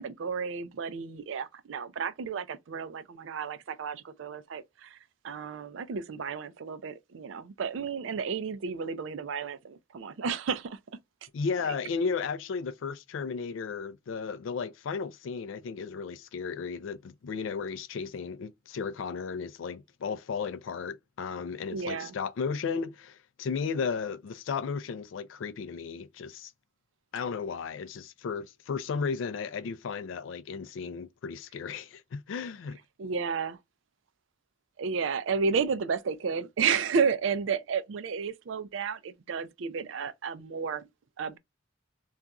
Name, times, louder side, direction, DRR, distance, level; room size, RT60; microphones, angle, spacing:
voice 1, 0.0-5.0 5.2-10.8 21.7-22.1 33.0-33.6 34.8-40.9 41.2-41.4, right 6 dB, 70° right, 0.4 m, -32 dB
voice 2, 11.3-26.5 27.1-32.8, left 5 dB, 75° left, 0.3 m, -34 dB
2.4 x 2.3 x 3.9 m
head